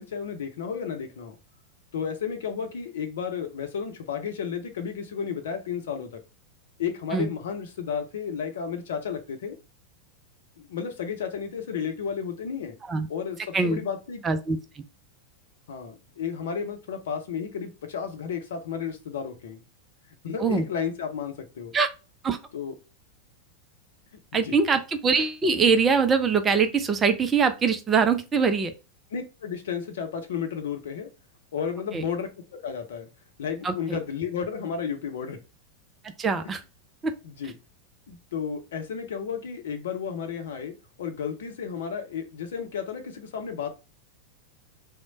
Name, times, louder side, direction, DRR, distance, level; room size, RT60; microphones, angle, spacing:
voice 1, 0.0-1.4 1.9-6.2 6.8-9.6 10.6-12.7 13.1-14.2 15.7-19.6 20.2-21.7 22.5-22.7 24.4-24.5 29.1-31.1 31.5-32.3 32.6-33.1 33.4-35.4 37.2-37.5 38.1-43.7, left 7 dB, 60° left, 6 dB, 0.7 m, -32 dB
voice 2, 14.2-14.8 20.4-20.6 21.7-21.9 22.2-22.4 24.3-28.7 31.9-32.0 33.6-34.0 36.2-36.6 37.0-37.1, right 5 dB, 20° right, 8 dB, 0.4 m, -23 dB
3.1 x 2.2 x 3.9 m, 0.30 s
figure-of-eight pair, 90°, 0 cm